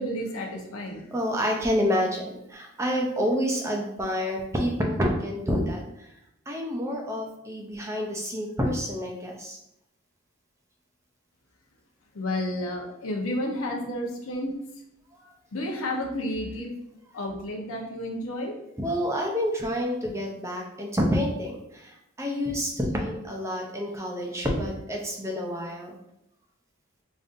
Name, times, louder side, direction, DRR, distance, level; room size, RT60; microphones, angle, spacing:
voice 1, 0.0-1.0 12.1-14.5 15.5-16.7 17.1-18.5, left 1 dB, 90° left, 1 dB, 0.8 m, -31 dB
voice 2, 1.1-2.2 2.5-6.1 6.5-9.6 15.2-15.3 18.8-26.0, equal, 15° right, 0 dB, 0.5 m, -28 dB
5.0 x 2.6 x 2.5 m, 0.82 s
head